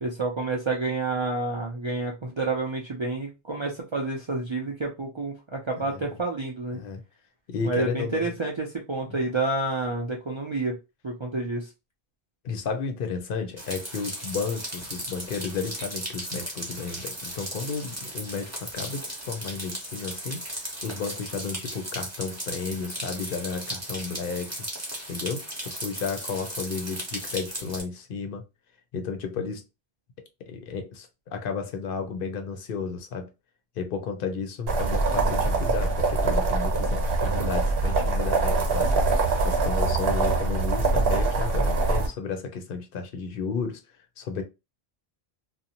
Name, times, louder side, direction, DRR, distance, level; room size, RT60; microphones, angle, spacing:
voice 1, 0.0-6.8 7.6-10.8 11.0-11.7, right 3 dB, 45° right, 0.3 m, -29 dB
voice 2, 5.8-6.1 6.7-7.0 7.5-8.3 12.4-24.6 25.1-28.4 28.9-29.6 30.4-33.3 33.8-38.9 39.4-44.4, left 5 dB, 65° left, 0.7 m, -33 dB
sound 1, 13.6-27.8, right 1 dB, 15° right, 0.8 m, -36 dB
sound 2, 34.7-42.1, right 3 dB, 70° right, 1.0 m, -23 dB
2.6 x 2.0 x 2.7 m
omnidirectional pair, 1.0 m